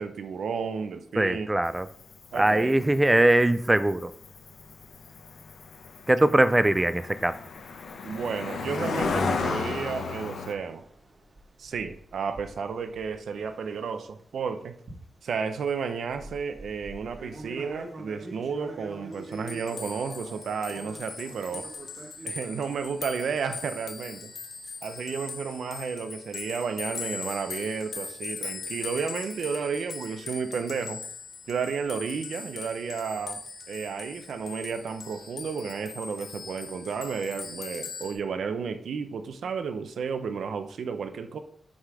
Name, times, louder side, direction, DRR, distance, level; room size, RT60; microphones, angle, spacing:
voice 1, 0.0-1.5 2.3-2.8 8.0-10.8 11.6-14.7 15.2-21.7 22.2-24.3 24.8-31.0 31.5-33.4 33.7-41.4, right 6 dB, 80° right, 0.7 m, -32 dB
voice 2, 1.2-1.9 2.3-4.1 6.1-7.4, right 1 dB, 10° right, 0.3 m, -21 dB
Cricket, 1.6-10.5, left 4 dB, 90° left, 0.9 m, -34 dB
sound 1, 7.6-14.3 14.9-23.3, right 1 dB, 40° right, 2.0 m, -46 dB
sound 2, 19.1-38.1, left 4 dB, 70° left, 1.5 m, -40 dB
6.3 x 5.7 x 4.9 m
wide cardioid pair, 160°, 0 cm